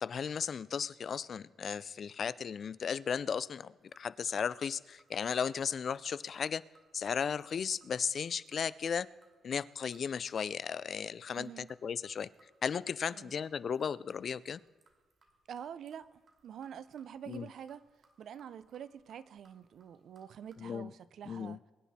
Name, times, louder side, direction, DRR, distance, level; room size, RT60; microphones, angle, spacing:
voice 1, 0.0-6.6 6.9-9.1 9.4-12.3 12.6-14.6 17.3-17.5 20.6-20.9 21.3-21.6, left 7 dB, 45° left, 0.3 m, -35 dB
sound 1, 3.8-20.6, right 4 dB, 45° right, 2.4 m, -69 dB
voice 2, 11.4-11.7 13.1-13.3 15.5-17.8 18.2-21.6, right 8 dB, 60° right, 0.5 m, -46 dB
23.0 x 10.0 x 4.2 m
wide cardioid pair, 165°, 0 cm